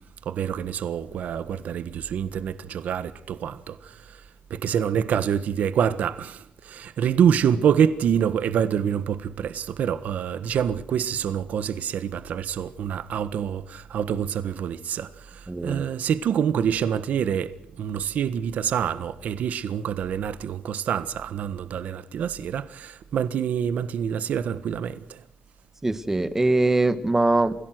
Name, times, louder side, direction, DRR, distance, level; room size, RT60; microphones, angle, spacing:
voice 1, 0.2-4.2 4.5-25.2, right 8 dB, 75° right, 1.5 m, -26 dB
voice 2, 15.5-15.8 25.8-27.5, right 2 dB, 15° right, 1.9 m, -22 dB
29.5 x 16.5 x 6.2 m
cardioid pair, 135°, 3 cm